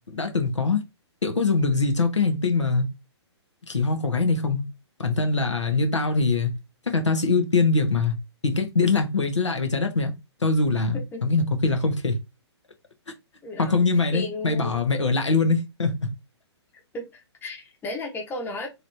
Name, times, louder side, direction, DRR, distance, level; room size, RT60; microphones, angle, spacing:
voice 1, 0.1-0.8 1.2-2.9 3.7-4.6 5.0-6.5 6.9-8.1 8.4-10.1 10.4-12.2 13.6-15.9, left 3 dB, 90° left, 1.0 m, -23 dB
voice 2, 10.9-11.2 13.4-14.8 16.9-18.7, left 2 dB, 15° left, 0.9 m, -34 dB
3.1 x 3.0 x 2.6 m
figure-of-eight pair, 125°, 15 cm